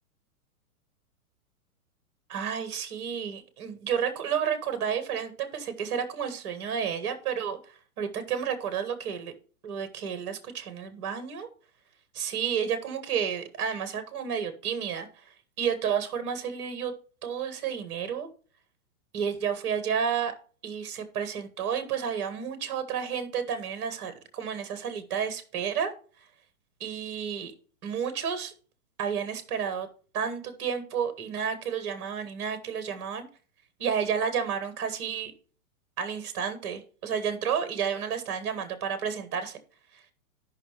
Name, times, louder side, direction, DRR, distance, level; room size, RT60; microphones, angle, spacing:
voice 1, 2.3-9.3 9.6-11.5 12.1-15.1 15.6-16.9 17.2-18.3 19.1-20.3 20.6-25.9 26.8-27.5 27.8-28.5 29.0-29.9 30.1-33.2 33.8-35.3 36.0-39.6, right 7 dB, 20° right, 10 dB, 0.9 m, -31 dB
13.0 x 5.6 x 3.2 m, 0.41 s
hypercardioid pair, 180°, 44 cm